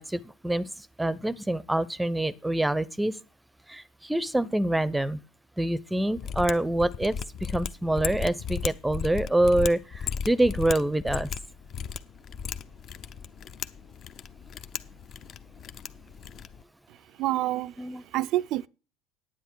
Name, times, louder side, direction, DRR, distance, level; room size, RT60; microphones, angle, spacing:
voice 1, 0.0-3.2 3.7-5.2 5.6-11.3 17.8-18.0, right 1 dB, 5° right, 0.6 m, -26 dB
Mechanisms, 6.1-16.6, left 7 dB, 45° left, 0.7 m, -36 dB
voice 2, 16.9-18.7, right 15 dB, 55° right, 0.4 m, -29 dB
10.0 x 9.1 x 4.6 m
figure-of-eight pair, 65°, 0 cm